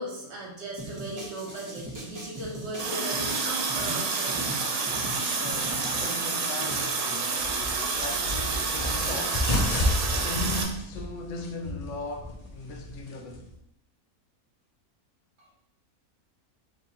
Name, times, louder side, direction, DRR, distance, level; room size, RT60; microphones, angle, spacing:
voice 1, 0.0-4.5 15.4-15.5, right 1 dB, 50° right, 1.4 m, -37 dB
sound 1, 0.8-7.0, right 1 dB, 20° right, 0.6 m, -40 dB
Water tap faucet, 2.8-10.6, right 4 dB, 80° right, 1.2 m, -29 dB
voice 2, 5.4-7.6 7.8-9.5 10.2-13.5, left 2 dB, 65° left, 0.9 m, -38 dB
sound 2, 7.4-13.5, left 1 dB, 45° left, 0.5 m, -31 dB
3.8 x 3.1 x 4.1 m
omnidirectional pair, 1.5 m